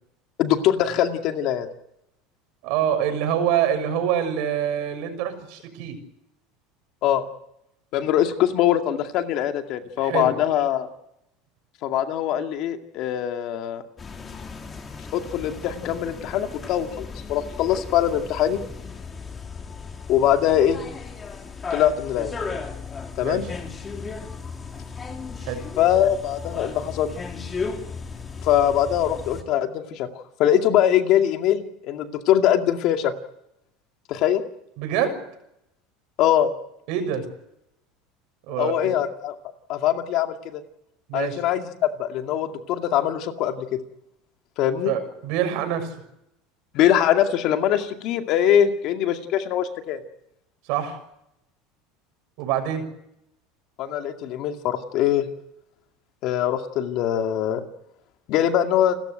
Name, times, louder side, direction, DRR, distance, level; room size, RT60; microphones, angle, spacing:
voice 1, 0.4-1.7 7.0-7.2 7.9-10.9 11.8-13.8 15.1-18.6 20.1-20.8 21.7-22.3 23.2-23.5 25.8-27.1 28.4-30.1 30.4-33.1 34.1-34.4 36.2-36.5 38.6-39.3 39.7-40.6 41.1-43.8 44.6-44.9 46.7-50.0 53.8-55.3 56.2-57.6 58.3-59.0, left 10 dB, 50° left, 6 dB, 2.2 m, -22 dB
voice 2, 2.6-6.0 10.0-10.3 23.2-23.4 25.4-25.6 34.8-35.2 36.9-37.2 38.5-39.0 41.1-41.4 44.8-45.9 50.6-51.0 52.4-52.8, right 9 dB, 65° right, 8 dB, 6.4 m, -25 dB
sound 1, 14.0-29.4, left 4 dB, 20° left, 2.9 m, -36 dB
29.5 x 14.0 x 8.1 m, 0.83 s
supercardioid pair, 140°, 0 cm